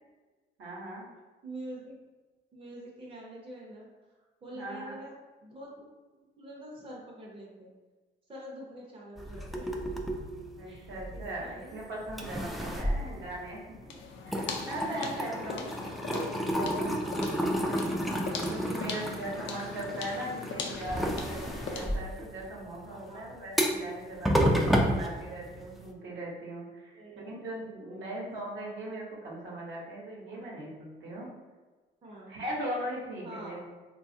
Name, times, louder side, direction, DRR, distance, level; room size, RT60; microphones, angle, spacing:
voice 1, 0.6-1.1 4.5-5.0 10.5-13.6 14.2-15.7 16.1-17.7 18.5-31.3 32.3-33.6, right 1 dB, 65° right, -4 dB, 0.9 m, -39 dB
voice 2, 1.4-1.9 2.5-3.9 4.4-5.1 5.4-7.7 8.3-9.7 10.7-11.8 12.9-13.1 15.3-15.9 18.8-19.1 22.9-23.5 23.8-24.1 26.9-27.3 27.8-28.2 30.3-30.5 32.0-32.3 33.2-33.7, right 1 dB, 25° right, -4 dB, 0.7 m, -46 dB
sound 1, 9.2-11.7 12.1-13.9 14.2-25.9, equal, ahead, 0.3 m, -31 dB
sound 2, 13.9-22.1, left 4 dB, 70° left, 0.5 m, -40 dB
3.2 x 2.3 x 2.7 m, 1.3 s
cardioid pair, 90°, 20 cm